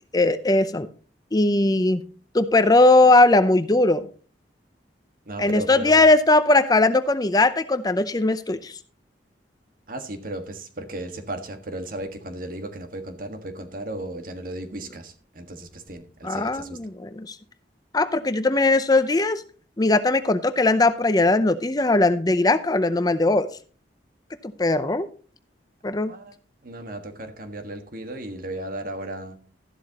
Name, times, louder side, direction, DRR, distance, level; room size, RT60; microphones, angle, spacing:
voice 1, 0.1-0.9 1.3-2.0 2.3-4.0 5.4-8.7 16.2-17.4 17.9-19.4 19.8-23.5 24.6-25.1 25.8-26.1, left 2 dB, 20° left, 11 dB, 0.6 m, -19 dB
voice 2, 5.2-6.1 9.9-16.8 26.1-26.4 26.6-29.4, right 1 dB, 50° right, 7 dB, 1.6 m, -35 dB
13.0 x 11.5 x 2.9 m, 0.38 s
head